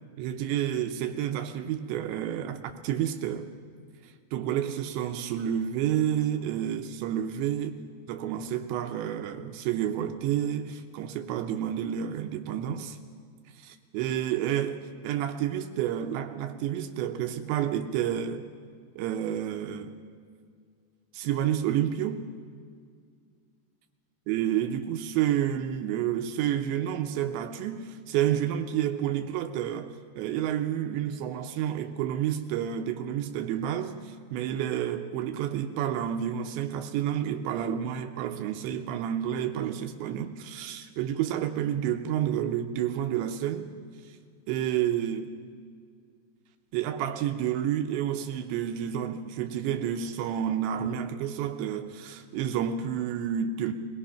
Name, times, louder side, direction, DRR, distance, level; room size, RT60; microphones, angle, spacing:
voice 1, 0.2-3.5 4.3-7.7 8.1-13.0 13.6-18.4 19.0-19.9 21.1-22.3 24.3-43.7 44.1-44.2 44.5-45.3 46.7-53.7, right 10 dB, 85° right, 3.1 m, -30 dB
24.0 x 19.0 x 5.7 m
omnidirectional pair, 5.1 m